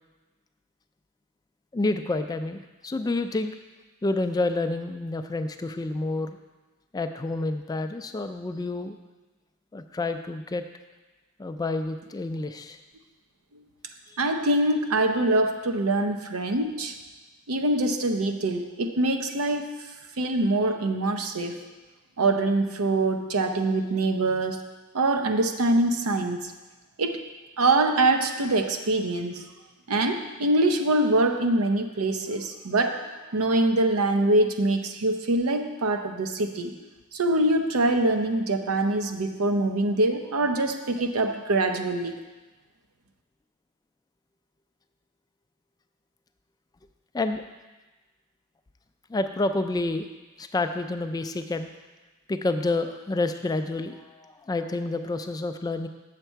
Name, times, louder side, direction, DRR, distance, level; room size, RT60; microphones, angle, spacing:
voice 1, 1.7-3.5 4.0-6.4 6.9-9.0 9.7-10.6 11.4-12.8 14.1-14.2 39.0-39.1 47.1-47.4 49.1-50.1 50.4-51.7 52.3-55.9, left 2 dB, 20° left, 8 dB, 0.3 m, -29 dB
voice 2, 14.2-16.9 17.5-19.7 20.2-21.6 22.2-24.7 24.9-26.5 27.0-27.2 27.6-29.4 29.9-36.7 37.1-42.2, right 2 dB, 85° right, 6 dB, 0.7 m, -24 dB
7.2 x 6.7 x 4.5 m, 1.2 s
head